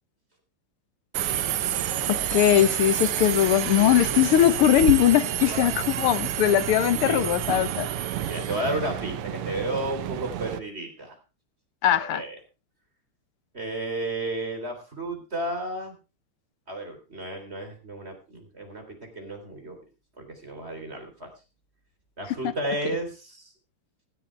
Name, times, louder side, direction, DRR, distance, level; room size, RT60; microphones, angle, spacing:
Subway metro underground, 1.1-10.6, right 11 dB, 85° right, 1.9 m, -29 dB
voice 1, 2.1-7.9 11.8-12.2, left 12 dB, 80° left, 14 dB, 1.8 m, -20 dB
voice 2, 5.5-5.9 6.2-6.3 6.9-7.3 8.3-11.1 11.9-12.4 13.5-16.0 16.7-19.8 20.2-21.3 22.2-23.5, right 1 dB, 25° right, 4 dB, 4.0 m, -33 dB
17.0 x 13.0 x 3.3 m, 0.30 s
omnidirectional pair, 2.4 m